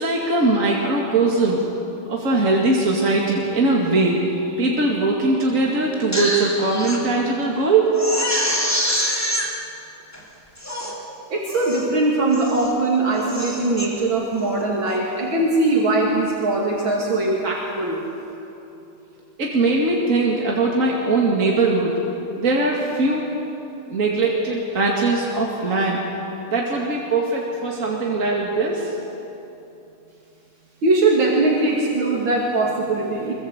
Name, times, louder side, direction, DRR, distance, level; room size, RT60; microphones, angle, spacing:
voice 1, 0.0-1.7 2.0-7.9 19.4-22.0 22.4-23.3 23.9-26.0 26.5-28.9, right 3 dB, 40° right, -2 dB, 2.7 m, -20 dB
Crying sobbing, 5.9-7.0 7.4-7.5 7.9-9.5 10.1-10.2 10.6-11.0 11.5-11.9 12.3-12.7 13.1-13.9 14.3-14.6, equal, 5° left, 3.2 m, -26 dB
voice 2, 11.3-18.0 30.8-33.3, right 2 dB, 70° right, -3 dB, 3.2 m, -21 dB
25.0 x 23.0 x 8.1 m, 2.9 s
omnidirectional pair, 2.2 m